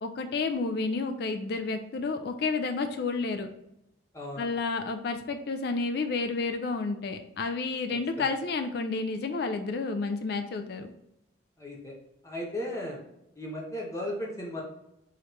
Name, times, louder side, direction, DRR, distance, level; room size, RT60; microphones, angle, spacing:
voice 1, 0.0-3.5 4.4-10.9, left 4 dB, 55° left, 7 dB, 0.3 m, -30 dB
voice 2, 4.1-4.5 7.9-8.3 11.6-11.9 12.2-13.0 13.4-14.6, left 1 dB, 15° left, -2 dB, 0.8 m, -36 dB
4.8 x 3.1 x 3.0 m, 0.85 s
head